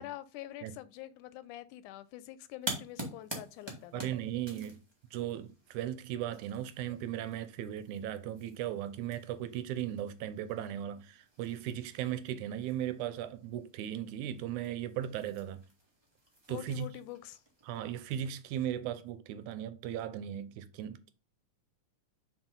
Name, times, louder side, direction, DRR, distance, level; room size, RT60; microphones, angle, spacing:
voice 1, 0.0-4.1 16.5-17.4, left 14 dB, 90° left, 2.1 m, -45 dB
sound 1, 2.6-18.7, right 1 dB, 20° right, 0.7 m, -48 dB
voice 2, 3.9-4.8 5.1-15.6 16.5-16.9 17.7-21.1, right 11 dB, 85° right, 2.1 m, -37 dB
6.2 x 4.4 x 3.8 m
omnidirectional pair, 3.5 m